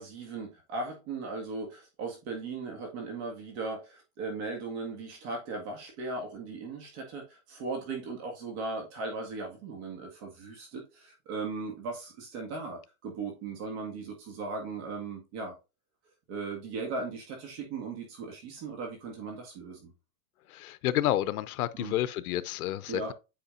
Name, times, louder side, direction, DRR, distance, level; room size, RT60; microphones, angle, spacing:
voice 1, 0.0-15.5 16.3-19.9 21.8-21.9 22.9-23.1, right 3 dB, 45° right, 1.9 m, -38 dB
voice 2, 20.5-23.1, left 13 dB, 70° left, 0.7 m, -30 dB
8.6 x 5.0 x 2.5 m
supercardioid pair, 150°, 46 cm